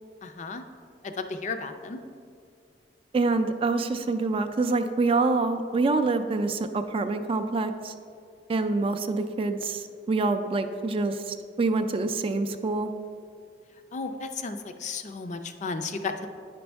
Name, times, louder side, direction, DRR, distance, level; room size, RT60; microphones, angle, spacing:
voice 1, 0.2-0.6 1.2-2.0 13.9-16.3, left 4 dB, 40° left, 8 dB, 0.4 m, -34 dB
voice 2, 3.1-7.9 8.5-12.9, right 3 dB, 30° right, 9 dB, 0.3 m, -26 dB
9.5 x 5.2 x 3.4 m, 2.3 s
head